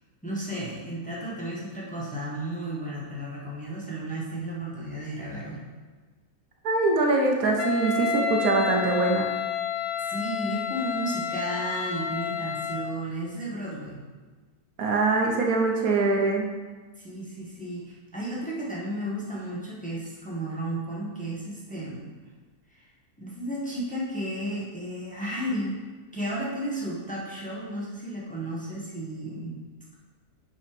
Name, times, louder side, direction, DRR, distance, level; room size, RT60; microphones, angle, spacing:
voice 1, 0.2-5.6 10.0-14.0 17.0-22.2 22.7-22.9 23.2-25.8 26.1-29.5, right 1 dB, 5° left, -6 dB, 1.4 m, -33 dB
voice 2, 6.6-9.2 14.8-16.4, right 3 dB, 70° right, 1 dB, 1.3 m, -23 dB
Wind instrument woodwind instrument, 7.6-12.9, left 7 dB, 80° left, 0.4 m, -30 dB
6.6 x 5.2 x 5.2 m, 1.3 s
omnidirectional pair, 1.6 m